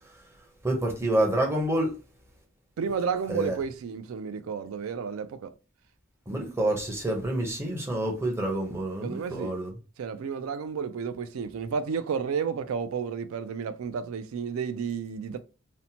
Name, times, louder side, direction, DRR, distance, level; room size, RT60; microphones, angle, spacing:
voice 1, 0.6-1.9 3.3-3.6 6.3-9.7, right 1 dB, 10° right, 0.6 m, -28 dB
voice 2, 2.8-5.5 9.0-9.6 10.0-15.4, right 6 dB, 70° right, 0.3 m, -32 dB
2.8 x 2.1 x 2.7 m
head